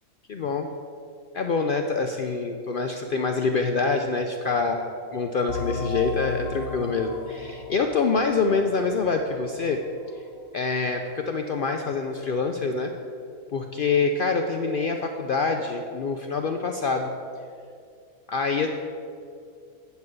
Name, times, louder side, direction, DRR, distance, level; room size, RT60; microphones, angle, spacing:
voice 1, 0.3-0.7 1.3-9.8 10.5-12.9 13.5-17.1 18.3-18.7, left 4 dB, 80° left, 4 dB, 0.4 m, -26 dB
sound 1, 5.5-10.8, left 3 dB, 30° left, 0.8 m, -36 dB
8.2 x 5.6 x 7.7 m, 2.4 s
omnidirectional pair, 1.5 m